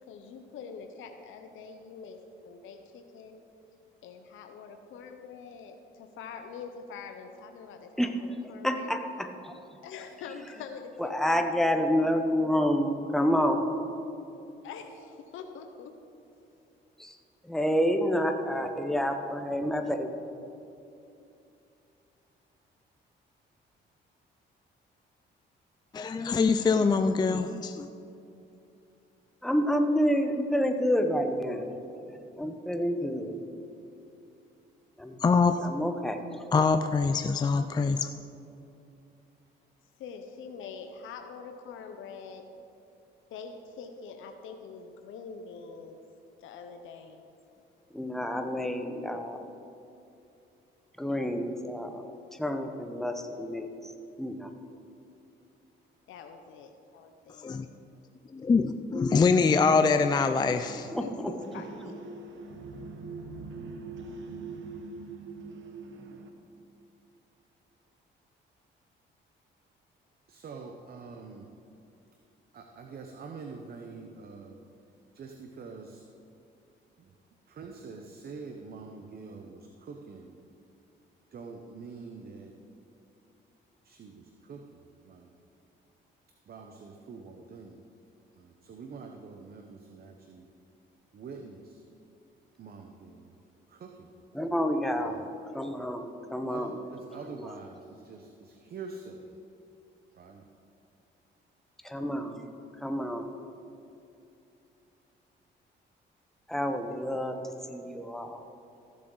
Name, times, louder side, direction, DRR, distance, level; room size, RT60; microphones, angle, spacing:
voice 1, 0.1-2.2 2.4-3.4 4.0-8.9 9.8-11.5 14.6-15.9 40.0-42.4 43.3-46.0 46.4-47.2 56.1-57.5 61.0-61.9, left 5 dB, 80° left, 6 dB, 0.8 m, -44 dB
voice 2, 8.6-9.5 11.0-13.7 17.0-17.1 17.4-20.1 29.4-31.7 32.4-33.4 35.0-35.2 35.6-36.4 47.9-49.4 51.0-52.0 52.4-53.9 54.2-54.5 60.9-61.3 94.3-95.2 95.5-96.8 97.4-97.5 101.8-102.4 102.8-103.3 106.5-107.4 107.7-108.4, equal, ahead, 5 dB, 0.9 m, -28 dB
voice 3, 25.9-27.9 35.2-35.7 36.5-38.1 57.4-57.7 58.3-61.0, left 4 dB, 20° left, 8 dB, 0.4 m, -24 dB
sound 1, 60.4-66.3, right 3 dB, 75° right, 1.0 m, -43 dB
voice 4, 70.3-71.5 72.5-74.6 75.1-76.0 77.0-77.1 77.5-80.4 81.3-82.6 83.8-85.3 86.5-87.9 88.3-90.5 91.1-91.8 92.6-93.4 93.7-94.1 94.9-95.3 96.5-99.3 100.1-100.5, right 4 dB, 50° right, 3 dB, 0.8 m, -45 dB
15.0 x 7.3 x 3.9 m, 2.7 s
cardioid pair, 90°, 20 cm